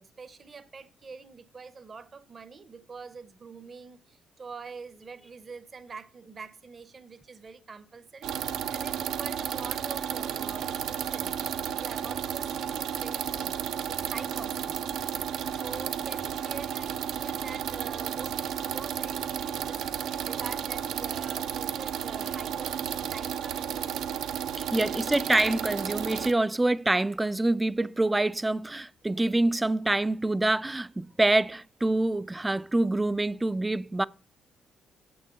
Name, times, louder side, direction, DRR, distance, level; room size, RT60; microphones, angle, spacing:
voice 1, 0.0-14.9 15.5-24.1 24.7-25.2, right 5 dB, 45° right, 0.7 m, -45 dB
sound 1, 8.2-26.3, right 9 dB, 85° right, 0.6 m, -32 dB
voice 2, 24.6-34.0, right 2 dB, 15° right, 0.3 m, -26 dB
7.4 x 6.3 x 5.7 m
cardioid pair, 75°, 0 cm